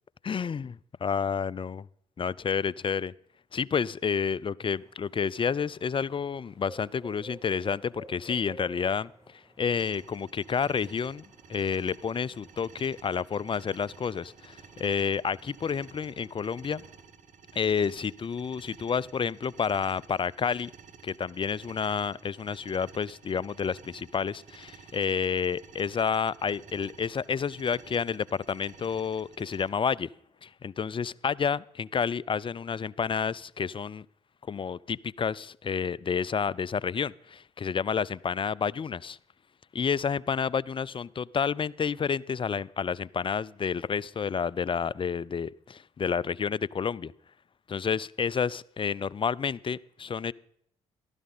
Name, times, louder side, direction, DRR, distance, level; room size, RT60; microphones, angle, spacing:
voice 1, 0.2-1.9 2.2-3.1 3.5-9.1 9.6-11.2 11.5-16.8 17.6-20.7 21.0-30.1 30.4-34.0 34.5-39.2 39.7-47.1 47.7-50.3, left 6 dB, 35° left, 23 dB, 0.5 m, -30 dB
sound 1, 4.7-17.0, right 1 dB, 20° right, 4.4 m, -53 dB
sound 2, 9.8-29.7, right 6 dB, 55° right, 1.2 m, -52 dB
14.0 x 12.0 x 4.1 m, 0.69 s
hypercardioid pair, 45°, 15 cm